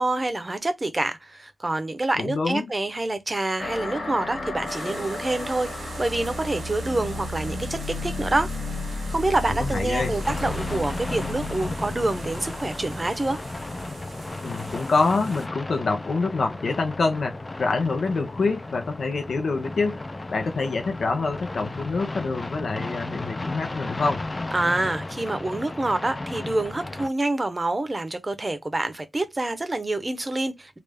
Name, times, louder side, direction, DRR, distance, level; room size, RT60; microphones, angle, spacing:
voice 1, 0.0-8.5 8.9-13.4 24.5-30.8, right 2 dB, 25° right, 0.7 m, -27 dB
voice 2, 2.2-2.7 9.6-10.1 14.4-20.0 20.3-24.2, left 3 dB, 80° left, 0.7 m, -26 dB
sound 1, 3.6-14.6, left 2 dB, 65° left, 1.3 m, -34 dB
sound 2, 4.7-15.5, right 4 dB, 90° right, 0.8 m, -43 dB
sound 3, 10.0-27.1, left 2 dB, 25° left, 0.3 m, -34 dB
3.4 x 2.5 x 3.4 m
wide cardioid pair, 140°, 0 cm